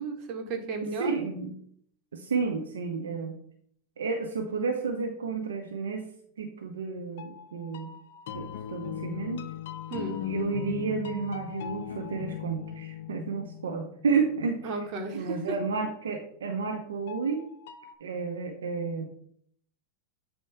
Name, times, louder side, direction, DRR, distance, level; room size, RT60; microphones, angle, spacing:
voice 1, 0.0-1.1 9.9-10.2 14.6-15.6, right 3 dB, 50° right, 3 dB, 1.7 m, -34 dB
voice 2, 1.0-1.5 2.1-3.3 4.0-6.1 6.4-7.9 8.3-9.5 10.3-14.7 15.1-17.4 18.0-19.1, right 5 dB, 90° right, 3 dB, 0.9 m, -31 dB
sound 1, 7.2-14.8 17.1-17.9, left 10 dB, 70° left, 0.6 m, -38 dB
7.9 x 3.0 x 5.7 m, 0.64 s
hypercardioid pair, 110°, 0 cm